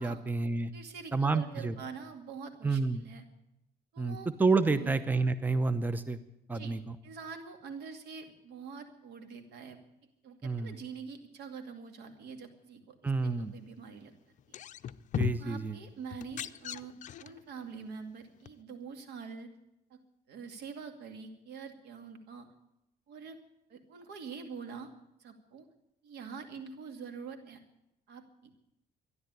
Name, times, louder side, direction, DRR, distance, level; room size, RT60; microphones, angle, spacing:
voice 1, 0.0-0.7 1.1-1.8 2.6-3.0 4.0-6.2 6.5-7.0 10.4-10.7 13.0-13.5 15.2-15.8, right 3 dB, 10° right, 12 dB, 0.8 m, -29 dB
voice 2, 0.7-3.2 3.9-4.3 4.7-5.0 6.5-6.8 7.0-9.8 10.2-14.1 14.5-14.6 15.4-16.9 17.2-19.5 19.9-20.0 20.3-22.5 23.1-23.4 23.7-24.9 25.2-25.7 26.0-27.6 28.1-28.6, right 5 dB, 75° right, 6 dB, 2.4 m, -45 dB
sound 1, 14.4-15.6 16.1-17.4 18.5-18.6, left 10 dB, 45° left, 0.6 m, -36 dB
13.0 x 11.0 x 9.4 m, 0.85 s
cardioid pair, 110°, 17 cm